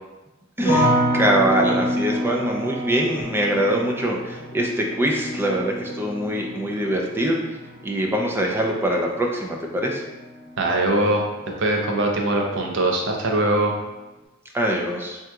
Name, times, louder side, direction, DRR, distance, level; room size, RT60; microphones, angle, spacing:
sound 1, 0.6-11.7 12.0-12.7, equal, 30° left, 0.9 m, -28 dB
voice 1, 0.6-7.4 7.8-10.0 14.5-15.2, right 1 dB, 10° right, 0 dB, 0.3 m, -23 dB
voice 2, 10.6-11.2 11.6-13.7, right 1 dB, 65° right, 1 dB, 0.6 m, -21 dB
3.5 x 2.8 x 2.3 m, 1.1 s
head